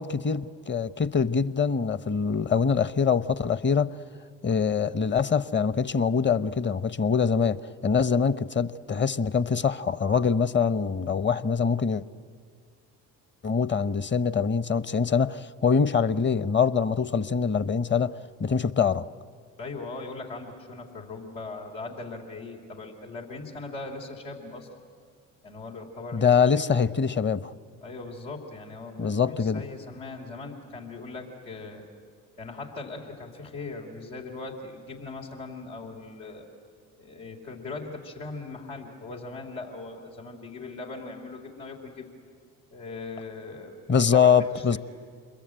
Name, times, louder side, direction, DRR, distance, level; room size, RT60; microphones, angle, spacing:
voice 1, 0.0-3.9 4.4-7.6 7.8-12.0 13.4-19.0 26.1-27.5 29.0-29.6 43.9-44.8, left 6 dB, 30° left, 0.8 m, -24 dB
voice 2, 19.6-24.7 25.4-26.3 26.5-26.6 27.8-31.8 32.4-36.5 37.0-42.1 42.7-44.8, left 3 dB, 85° left, 3.3 m, -39 dB
27.0 x 22.0 x 9.0 m
hypercardioid pair, 60°, 39 cm